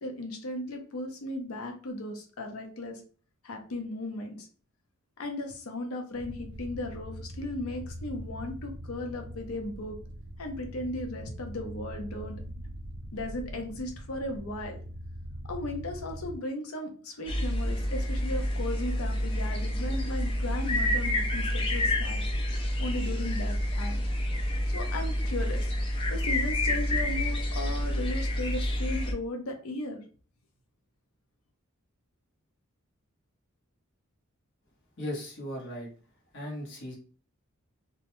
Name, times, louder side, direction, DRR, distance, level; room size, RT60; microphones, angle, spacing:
voice 1, 0.0-3.0 3.4-4.5 5.2-10.0 10.4-12.4 13.1-14.8 15.5-22.2 22.8-24.0 24.7-25.7 26.1-30.0, left 1 dB, 85° left, 3 dB, 0.6 m, -36 dB
sound 1, 6.1-16.4, equal, 55° right, 0.4 m, -42 dB
sound 2, 17.3-29.1, left 1 dB, 25° left, 0.3 m, -28 dB
voice 2, 35.0-35.9 36.3-36.9, left 1 dB, 60° left, -2 dB, 0.9 m, -37 dB
2.2 x 2.1 x 2.9 m, 0.40 s
head